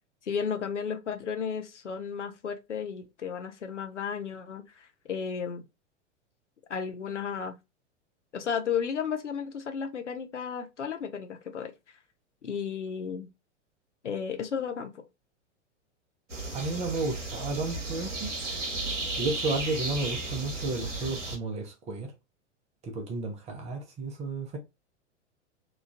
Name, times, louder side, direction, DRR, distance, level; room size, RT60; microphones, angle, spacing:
voice 1, 0.2-5.6 6.7-7.5 8.3-11.7 12.4-13.3 14.0-15.0, left 7 dB, 80° left, 0.6 m, -33 dB
sound 1, 16.3-21.4, right 2 dB, 85° right, 0.8 m, -34 dB
voice 2, 16.5-18.3 19.2-22.1 22.8-24.6, right 3 dB, 20° right, 0.6 m, -32 dB
2.9 x 2.3 x 2.4 m
figure-of-eight pair, 95°, 36 cm